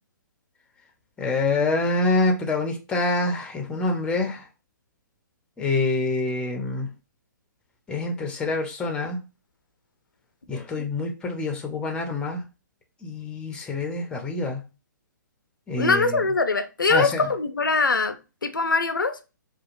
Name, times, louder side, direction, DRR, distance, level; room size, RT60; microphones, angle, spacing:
voice 1, 1.2-4.4 5.6-6.9 7.9-9.2 10.5-12.4 13.0-14.6 15.7-16.2 16.9-17.3, left 2 dB, 10° left, 0.5 m, -26 dB
voice 2, 15.8-18.2 18.4-19.2, left 3 dB, 85° left, 0.4 m, -22 dB
2.7 x 2.2 x 2.5 m
figure-of-eight pair, 125°, 11 cm